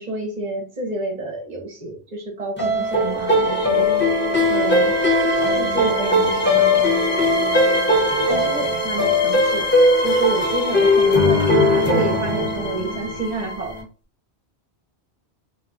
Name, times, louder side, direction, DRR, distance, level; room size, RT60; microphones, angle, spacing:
voice 1, 0.0-3.9 4.4-5.0 5.5-6.9 8.3-9.7 10.0-13.8, right 3 dB, 45° right, 2 dB, 0.8 m, -29 dB
sound 1, 2.6-13.8, left 1 dB, 10° left, 0.9 m, -19 dB
2.6 x 2.3 x 3.9 m, 0.35 s
omnidirectional pair, 1.1 m